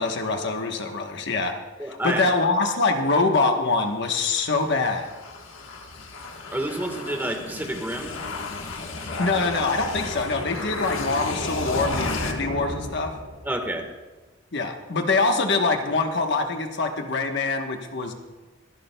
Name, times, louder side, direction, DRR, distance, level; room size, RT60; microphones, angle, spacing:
voice 1, 0.0-1.5 1.9-5.1 9.2-13.1 14.5-18.1, left 3 dB, 60° left, 4 dB, 1.1 m, -24 dB
voice 2, 1.8-2.2 6.5-8.2 13.4-13.8, right 1 dB, 10° right, 3 dB, 1.4 m, -29 dB
sound 1, 4.2-13.6, left 2 dB, 85° left, 1.3 m, -33 dB
25.5 x 11.5 x 2.2 m, 1.2 s
head